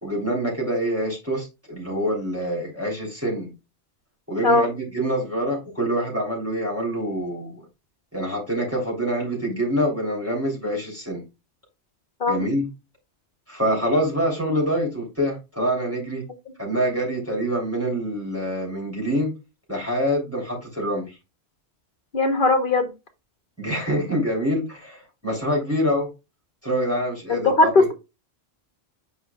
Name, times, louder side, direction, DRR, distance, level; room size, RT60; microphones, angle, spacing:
voice 1, 0.0-3.5 4.3-7.5 8.1-11.2 12.3-12.7 13.5-16.2 16.6-19.3 19.7-21.2 23.6-26.1 26.6-27.9, equal, 10° right, 3.2 m, -25 dB
voice 2, 22.1-22.9 27.3-27.9, left 2 dB, 50° left, 1.2 m, -19 dB
8.1 x 5.5 x 2.3 m
omnidirectional pair, 1.1 m